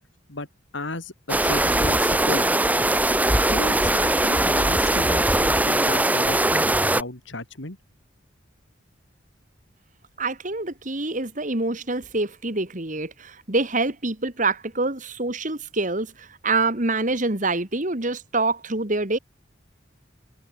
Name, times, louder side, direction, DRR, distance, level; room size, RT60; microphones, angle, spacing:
voice 1, 0.7-2.4 3.5-7.8, left 2 dB, 75° left, 3.9 m, -34 dB
sound 1, 1.3-7.0, right 1 dB, 10° right, 1.5 m, -20 dB
voice 2, 10.2-16.1 16.4-19.2, right 3 dB, 40° right, 2.3 m, -26 dB
head